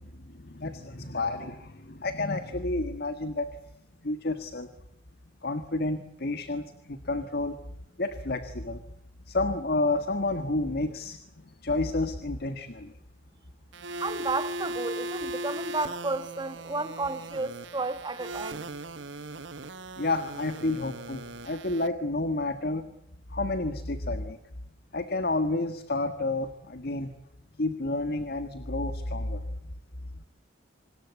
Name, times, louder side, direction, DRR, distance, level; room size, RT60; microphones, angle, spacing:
voice 1, 0.2-3.5 4.0-4.7 5.4-7.6 8.0-8.8 9.3-11.2 11.6-12.9 20.0-22.9 23.3-24.4 24.9-27.1 27.6-29.4, left 2 dB, 55° left, 1.6 m, -30 dB
sound 1, 13.7-21.9, right 1 dB, 70° right, 1.4 m, -38 dB
voice 2, 14.0-18.6, right 3 dB, 25° right, 1.6 m, -32 dB
26.0 x 20.5 x 8.2 m
head